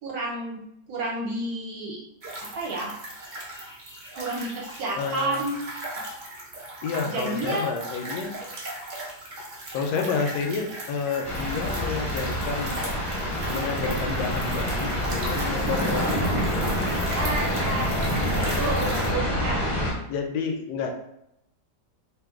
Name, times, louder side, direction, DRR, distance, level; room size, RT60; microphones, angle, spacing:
voice 1, 0.0-0.6 0.9-2.0 2.4-2.9 4.1-5.6 7.0-7.7 17.1-17.9 18.3-19.9, right 2 dB, 65° right, -2 dB, 1.2 m, -30 dB
sound 1, 2.2-19.1, right 1 dB, 50° right, 0.5 m, -37 dB
voice 2, 5.0-5.4 6.8-8.3 9.7-12.7 13.5-16.3 20.1-20.9, left 5 dB, 75° left, 3 dB, 1.1 m, -30 dB
sound 2, 11.2-19.9, equal, 35° left, 0.6 m, -27 dB
2.9 x 2.2 x 3.5 m, 0.78 s
omnidirectional pair, 1.8 m